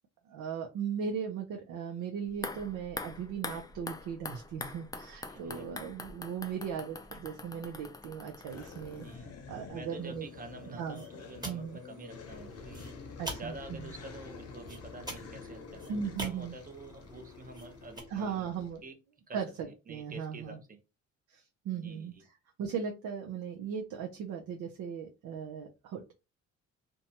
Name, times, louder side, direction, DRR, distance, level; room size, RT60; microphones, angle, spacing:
voice 1, 0.3-9.1 9.5-10.3 10.8-11.0 11.4-11.8 13.2-13.9 15.9-16.5 18.1-18.8 19.3-20.6 21.3-22.1 22.6-26.1, right 7 dB, 75° right, 1 dB, 0.6 m, -38 dB
sound 1, 2.3-9.4 9.7-9.8, left 3 dB, 15° left, 0.3 m, -44 dB
voice 2, 5.3-5.8 9.0-9.3 9.7-12.9 13.3-18.5 18.8-18.9 19.3-20.8 21.7-22.2, right 2 dB, 30° right, 6 dB, 0.8 m, -48 dB
sound 2, 8.5-18.8, left 4 dB, 55° left, 0.8 m, -48 dB
sound 3, 9.9-18.0, right 1 dB, 15° right, 1.2 m, -47 dB
2.6 x 2.2 x 2.8 m, 0.27 s
cardioid pair, 90°, 30 cm